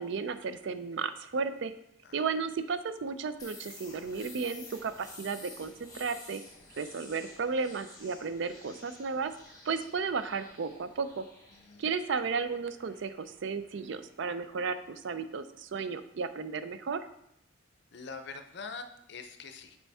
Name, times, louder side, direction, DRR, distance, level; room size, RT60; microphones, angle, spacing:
voice 1, 0.0-1.7 2.1-6.4 6.8-9.3 9.6-11.2 11.8-17.0, right 5 dB, 60° right, 11 dB, 0.4 m, -34 dB
sound 1, 3.4-15.0, left 2 dB, 15° left, 1.2 m, -52 dB
voice 2, 11.5-11.8 17.9-19.8, left 4 dB, 55° left, 8 dB, 0.5 m, -44 dB
6.8 x 4.4 x 3.5 m, 0.78 s
head